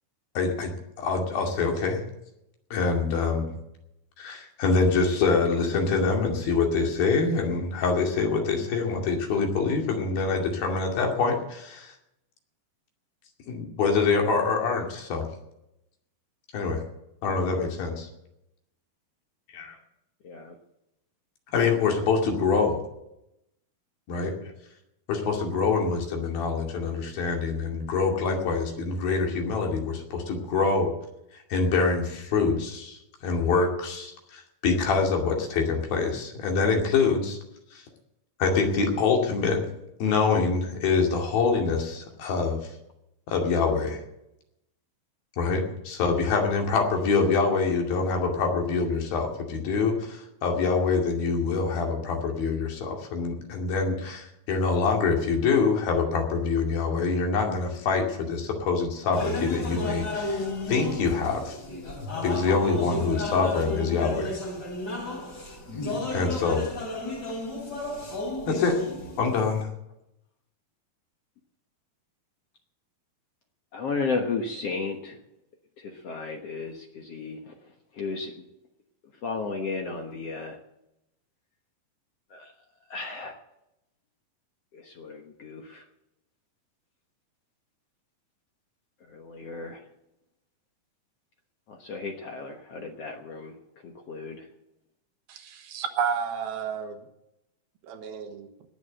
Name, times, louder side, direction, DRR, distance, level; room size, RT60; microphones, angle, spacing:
voice 1, 0.4-2.0 2.7-3.5 4.2-11.9 13.5-15.3 16.5-16.8 17.2-18.1 19.5-19.8 21.5-22.8 24.1-24.3 25.1-30.9 31.5-33.0 33.2-37.4 37.7-37.8 38.4-39.6 40.0-42.6 43.3-44.0 45.4-60.4 60.7-61.6 62.2-64.4 66.1-66.6 68.5-68.8 69.2-69.7, left 4 dB, 75° left, 1 dB, 4.3 m, -25 dB
sound 1, 59.1-69.6, left 2 dB, 30° left, 3.4 m, -33 dB
voice 2, 66.3-66.6 73.7-75.2 76.0-77.5 78.0-78.3 79.2-80.6 82.3-82.5 82.9-83.3 84.7-85.8 89.1-89.8 91.7-93.5 93.8-94.5, left 4 dB, 60° left, 3 dB, 1.8 m, -34 dB
voice 3, 95.3-97.0 97.9-98.5, right 7 dB, 80° right, 6 dB, 3.3 m, -31 dB
19.0 x 7.5 x 7.8 m, 0.86 s
omnidirectional pair, 4.3 m